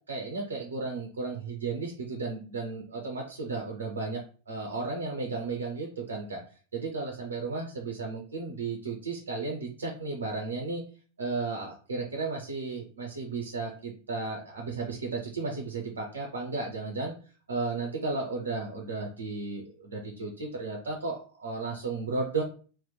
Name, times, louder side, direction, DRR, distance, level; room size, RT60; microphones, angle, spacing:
voice 1, 0.1-4.2 4.5-6.4 6.7-10.8 11.2-17.2 17.5-22.4, right 3 dB, 70° right, 0 dB, 0.5 m, -34 dB
2.9 x 2.0 x 2.2 m, 0.38 s
figure-of-eight pair, 90°, 0 cm